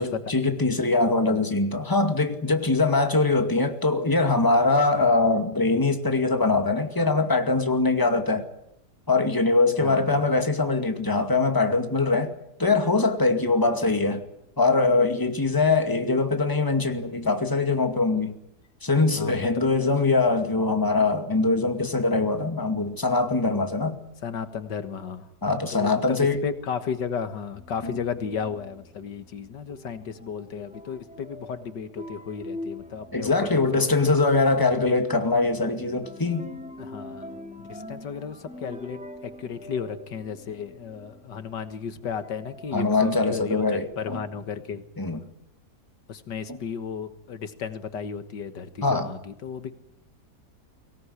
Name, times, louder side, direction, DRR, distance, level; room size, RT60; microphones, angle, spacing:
voice 1, 0.0-8.5 9.1-12.3 12.6-14.2 14.6-18.3 18.8-24.0 25.4-26.4 27.8-28.0 33.1-36.5 42.7-44.2 45.0-45.2 46.5-46.6 48.8-49.1, left 3 dB, 10° left, 2.2 m, -22 dB
voice 2, 9.8-10.2 19.2-19.7 24.2-25.3 25.7-33.8 36.8-37.3 37.7-43.6 44.0-44.8 46.1-49.7, left 7 dB, 85° left, 2.1 m, -34 dB
sound 1, 27.5-41.6 42.2-43.3, left 1 dB, 5° right, 2.4 m, -44 dB
24.0 x 18.0 x 9.8 m
omnidirectional pair, 1.8 m